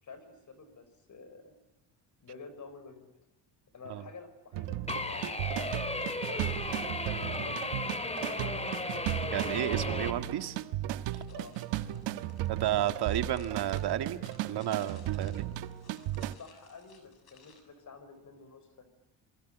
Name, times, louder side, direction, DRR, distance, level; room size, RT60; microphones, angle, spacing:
voice 1, 0.0-1.6 2.2-3.1 3.7-6.0 6.3-8.7 11.3-11.6 16.4-18.9, left 4 dB, 45° left, 5.7 m, -49 dB
sound 1, 4.5-16.3, right 13 dB, 90° right, 1.3 m, -36 dB
sound 2, 4.9-10.1, left 2 dB, 15° left, 2.5 m, -35 dB
voice 2, 9.3-10.6 11.1-11.2 12.5-14.2 14.4-15.4, right 11 dB, 65° right, 2.0 m, -32 dB
sound 3, 11.1-17.6, left 5 dB, 60° left, 6.9 m, -59 dB
27.0 x 22.5 x 9.0 m
cardioid pair, 110°, 42 cm